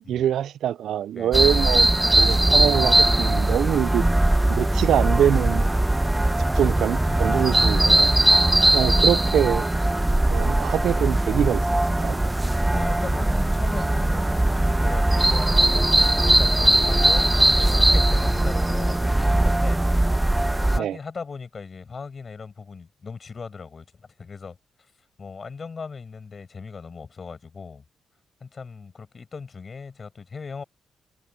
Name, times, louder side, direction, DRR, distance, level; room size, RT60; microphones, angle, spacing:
voice 1, 0.1-1.9 2.1-4.1 4.5-5.6 6.5-8.1 8.7-9.7 10.3-11.6 12.0-12.2 20.7-21.0, right 10 dB, 80° right, 0.4 m, -24 dB
voice 2, 1.1-1.5 6.6-6.7 7.1-7.2 8.5-9.1 12.7-19.8 20.2-24.6 25.2-27.8 28.4-30.6, left 5 dB, 35° left, 7.4 m, -38 dB
sound 1, 1.3-20.8, right 1 dB, 10° right, 0.4 m, -20 dB
cardioid pair, 125°, 0 cm